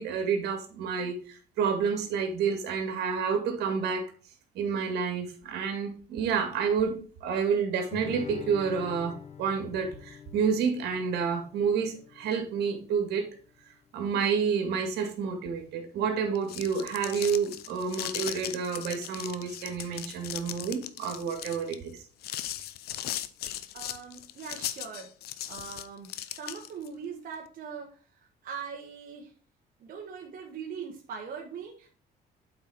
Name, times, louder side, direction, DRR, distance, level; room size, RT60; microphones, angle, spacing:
voice 1, 0.0-4.1 4.5-13.3 13.9-21.9, right 6 dB, 75° right, 5 dB, 2.0 m, -29 dB
Guitar, 7.9-13.0, left 7 dB, 40° left, 0.9 m, -44 dB
sound 1, 16.3-26.9, left 12 dB, 70° left, 0.6 m, -38 dB
voice 2, 23.7-25.1 25.5-29.3 29.8-31.9, right 6 dB, 55° right, 0 dB, 1.4 m, -41 dB
8.1 x 4.5 x 4.3 m, 0.41 s
cardioid pair, 110°, 17 cm